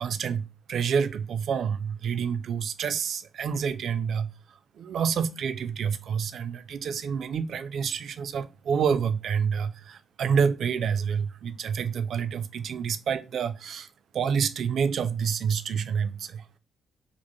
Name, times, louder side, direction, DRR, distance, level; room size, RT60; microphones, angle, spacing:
voice 1, 0.0-4.3 4.8-13.9 14.1-16.4, right 7 dB, 55° right, 0.3 m, -28 dB
4.9 x 2.0 x 3.0 m
cardioid pair, 150°, 0 cm